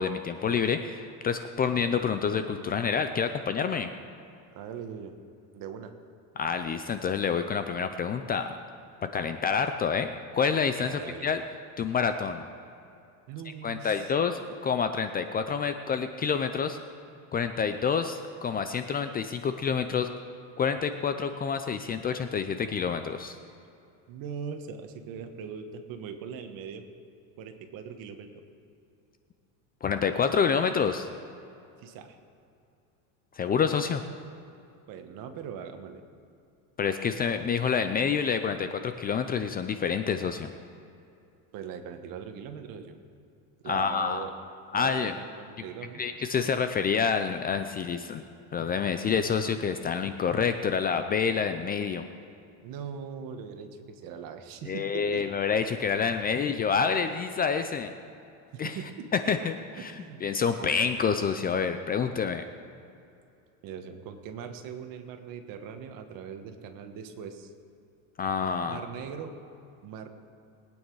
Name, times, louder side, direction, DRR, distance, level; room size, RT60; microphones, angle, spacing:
voice 1, 0.0-3.9 6.4-8.5 9.0-11.4 11.8-12.5 13.6-16.8 17.3-20.1 20.6-23.4 29.8-31.1 33.3-34.0 36.8-40.5 43.7-44.2 44.7-45.2 46.0-48.2 48.5-52.0 54.7-57.9 58.6-58.8 59.1-62.4 68.2-68.8, left 6 dB, 25° left, 9 dB, 0.4 m, -28 dB
voice 2, 4.5-5.1 5.5-5.9 10.8-11.3 13.3-14.1 24.1-26.8 27.4-28.4 31.8-32.2 34.9-36.0 41.5-43.0 43.6-44.3 44.7-46.0 52.6-55.2 58.5-59.3 59.8-60.2 60.6-60.8 63.6-67.5 68.7-69.4 69.8-70.1, right 7 dB, 55° right, 7 dB, 1.4 m, -40 dB
21.0 x 9.1 x 4.7 m, 2.6 s
cardioid pair, 140°, 40 cm